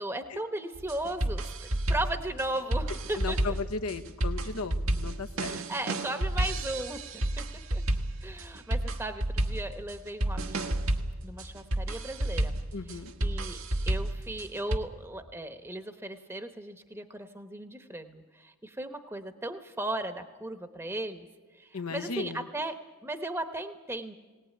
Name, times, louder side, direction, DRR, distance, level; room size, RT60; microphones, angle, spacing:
voice 1, 0.0-3.6 5.5-7.0 7.4-7.5 7.7-7.8 8.2-10.8 11.2-12.5 13.2-13.6 13.9-21.3 21.5-22.8 23.0-24.1, right 1 dB, 10° right, 7 dB, 1.0 m, -36 dB
sound 1, 0.7-14.8, right 1 dB, 70° right, 1.4 m, -31 dB
voice 2, 3.1-5.6 12.7-13.1 21.7-22.5, left 4 dB, 90° left, 8 dB, 1.2 m, -36 dB
19.0 x 18.5 x 9.3 m, 1.3 s
head